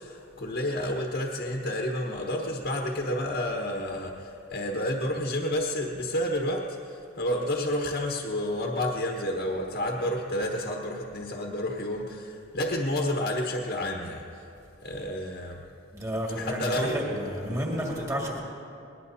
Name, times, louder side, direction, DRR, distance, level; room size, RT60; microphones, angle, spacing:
voice 1, 0.0-14.3 14.8-15.6 16.4-17.0, left 1 dB, 55° left, 0 dB, 1.3 m, -30 dB
voice 2, 15.9-18.4, equal, 15° right, -3 dB, 2.1 m, -31 dB
22.0 x 20.0 x 2.8 m, 2.7 s
head